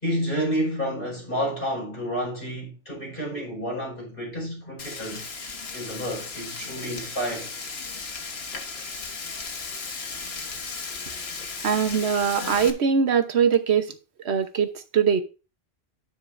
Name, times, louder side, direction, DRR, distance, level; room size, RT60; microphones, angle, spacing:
voice 1, 0.0-5.2 5.7-7.5, equal, 55° left, 4.9 m, -30 dB
Frying (food), 4.8-12.7, left 4 dB, 75° left, 1.5 m, -35 dB
voice 2, 11.6-14.0 14.2-15.2, right 7 dB, 85° right, 1.2 m, -22 dB
10.5 x 9.3 x 2.6 m
omnidirectional pair, 1.1 m